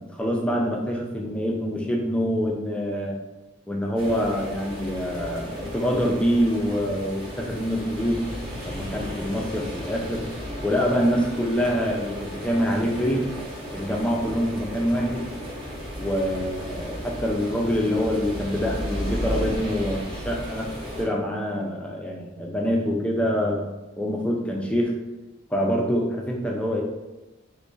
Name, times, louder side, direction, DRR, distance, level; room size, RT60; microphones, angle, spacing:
voice 1, 0.0-3.2 3.7-8.2 8.6-10.3 10.6-13.3 13.7-15.3 16.0-20.7 21.0-23.7 23.9-24.9 25.5-26.8, equal, 5° left, -1 dB, 0.3 m, -25 dB
sound 1, 4.0-21.1, equal, 25° right, 0.7 m, -34 dB
3.0 x 2.4 x 3.7 m, 1.0 s
head